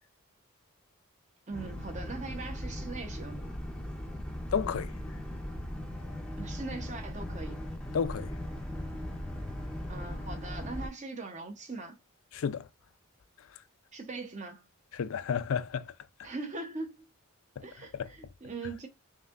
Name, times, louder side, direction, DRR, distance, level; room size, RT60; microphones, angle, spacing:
Boat Water vehicle, 1.5-10.9, left 1 dB, 5° left, 0.6 m, -38 dB
voice 1, 1.5-3.5 6.4-7.6 9.9-12.0 13.9-14.7 16.2-17.1 17.6-18.9, right 3 dB, 35° right, 0.8 m, -41 dB
voice 2, 4.5-4.9 7.9-8.3 12.3-12.7 14.9-15.9 17.6-17.7 17.9-18.1, left 7 dB, 70° left, 0.4 m, -31 dB
5.4 x 2.7 x 2.4 m
head